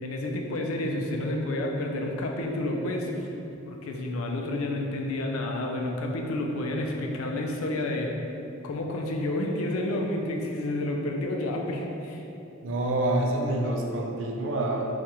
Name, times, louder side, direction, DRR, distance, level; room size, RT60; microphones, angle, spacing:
voice 1, 0.0-3.4 3.7-8.2 8.6-12.2, left 1 dB, 80° left, 1 dB, 0.4 m, -30 dB
voice 2, 12.6-14.9, right 1 dB, 60° right, 0 dB, 0.4 m, -27 dB
4.6 x 2.4 x 2.8 m, 2.9 s
head